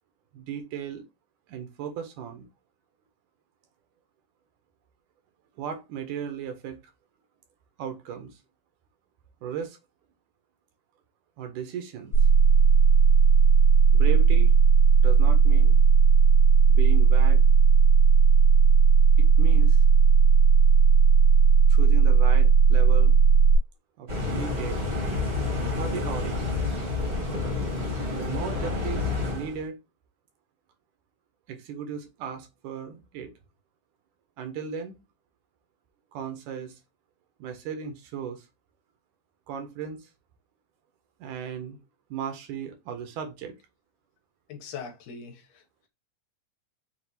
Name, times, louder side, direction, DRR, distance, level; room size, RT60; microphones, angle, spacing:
voice 1, 0.3-1.0 1.5-2.5 5.6-6.8 7.8-8.4 9.4-9.8 11.4-12.1 13.9-14.5 15.0-15.8 16.7-17.5 19.2-19.8 21.7-23.2 24.0-24.1 24.4-24.8 25.8-26.5 28.1-29.8 31.5-33.3 34.4-35.0 36.1-36.8 37.4-38.5 39.5-40.1 41.2-41.8 42.1-43.6, right 7 dB, 75° right, 2.1 m, -36 dB
sound 1, 12.1-23.6, right 6 dB, 60° left, 1.2 m, -16 dB
sound 2, 24.1-29.6, left 3 dB, 45° right, 0.8 m, -29 dB
voice 2, 44.5-45.9, left 6 dB, 75° left, 2.1 m, -41 dB
5.9 x 2.4 x 2.7 m
omnidirectional pair, 3.7 m